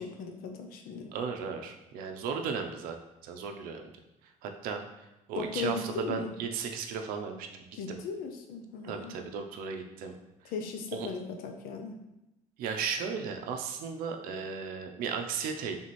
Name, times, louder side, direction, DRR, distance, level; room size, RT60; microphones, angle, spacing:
voice 1, 0.0-1.1 5.3-6.4 7.7-9.2 10.4-12.0, left 5 dB, 85° left, 4 dB, 0.6 m, -37 dB
voice 2, 1.1-3.0 3.2-3.9 4.4-4.8 5.3-8.0 8.8-10.1 10.9-11.1 12.6-15.8, right 6 dB, 85° right, 4 dB, 0.6 m, -35 dB
3.4 x 3.1 x 4.1 m, 0.95 s
cardioid pair, 135°, 14 cm